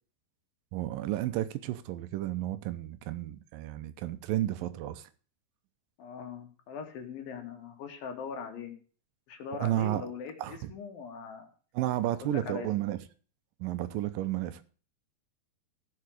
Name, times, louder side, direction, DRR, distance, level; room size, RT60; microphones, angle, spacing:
voice 1, 0.7-5.1 9.6-10.1 10.4-10.7 11.7-13.0 13.6-14.6, right 14 dB, 80° right, 2.4 m, -32 dB
voice 2, 6.0-8.7 9.3-11.5 12.1-12.7, left 6 dB, 80° left, 3.5 m, -41 dB
14.5 x 5.9 x 6.4 m
omnidirectional pair, 4.1 m